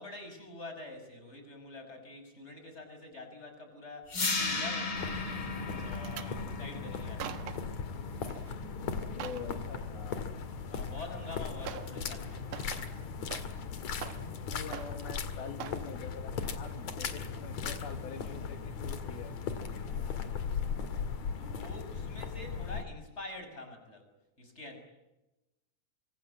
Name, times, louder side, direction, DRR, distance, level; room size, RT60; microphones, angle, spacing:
voice 1, 0.0-7.4 10.7-12.6 19.9-20.9 21.4-24.1 24.4-24.8, left 2 dB, 15° left, 6 dB, 6.1 m, -46 dB
sound 1, 4.1-10.1, left 3 dB, 30° left, 4.4 m, -37 dB
sound 2, 4.9-22.8, left 6 dB, 50° left, 2.9 m, -38 dB
sound 3, 5.8-6.3 6.9-7.7 8.2-8.5 8.9-9.5 10.9-11.0 11.7-12.0 12.3-13.7 13.9-14.4 14.7-15.2 15.6-15.9 16.4-16.6 16.9-17.0, right 9 dB, 65° right, 2.6 m, -44 dB
voice 2, 9.1-10.3 14.5-19.3, left 6 dB, 75° left, 6 dB, 3.7 m, -45 dB
26.0 x 25.5 x 8.8 m, 0.99 s
omnidirectional pair, 4.5 m